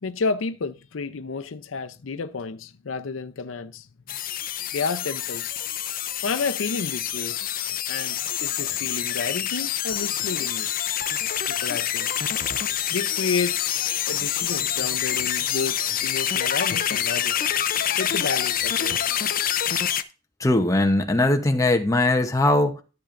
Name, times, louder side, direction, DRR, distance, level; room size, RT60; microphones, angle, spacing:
voice 1, 0.0-3.9 4.7-5.5 6.2-7.4 7.9-10.7 11.5-12.1 12.9-17.4 18.0-19.0, left 4 dB, 85° left, 0.6 m, -30 dB
sound 1, 4.1-20.0, left 10 dB, 45° left, 0.6 m, -26 dB
voice 2, 20.4-22.8, left 2 dB, 15° left, 0.8 m, -20 dB
13.5 x 6.8 x 2.5 m
head